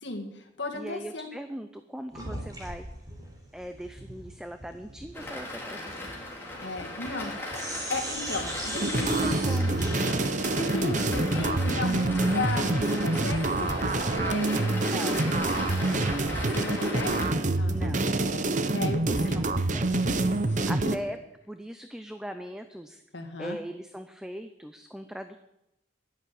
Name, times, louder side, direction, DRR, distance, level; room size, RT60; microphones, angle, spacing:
voice 1, 0.0-1.3 6.6-7.6 7.9-9.8 10.6-14.5 16.4-17.3 17.6-17.9 18.2-18.5 18.7-19.5 19.9-20.0 20.4-20.9 23.1-23.6, left 2 dB, 70° left, 4 dB, 2.1 m, -35 dB
voice 2, 0.7-2.9 3.5-6.2 6.8-6.9 8.9-9.8 14.8-16.4 17.6-18.1 19.1-19.9 20.7-21.2 21.5-23.0 23.4-25.4, equal, 5° right, 8 dB, 0.5 m, -40 dB
sound 1, 2.1-7.3 7.5-14.1, right 1 dB, 20° right, 3.6 m, -39 dB
sound 2, 5.1-17.3, left 1 dB, 10° left, 3.1 m, -37 dB
sound 3, 8.7-21.0, right 2 dB, 40° right, 0.8 m, -26 dB
11.0 x 11.0 x 8.7 m, 0.90 s
head